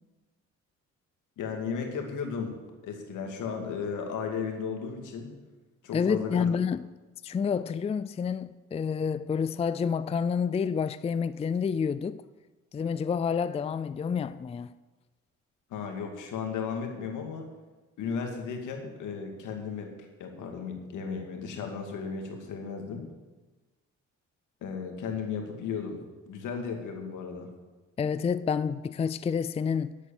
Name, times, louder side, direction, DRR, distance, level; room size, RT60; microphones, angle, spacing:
voice 1, 1.4-2.5 2.8-5.3 5.8-6.5 15.7-17.5 18.0-19.9 20.2-23.0 24.6-26.0 26.3-27.5, left 6 dB, 85° left, 2.3 m, -35 dB
voice 2, 5.9-6.9 7.2-12.2 12.7-14.7 28.0-30.0, left 6 dB, 20° left, 0.4 m, -29 dB
11.5 x 8.3 x 7.1 m
cardioid pair, 90°, 30 cm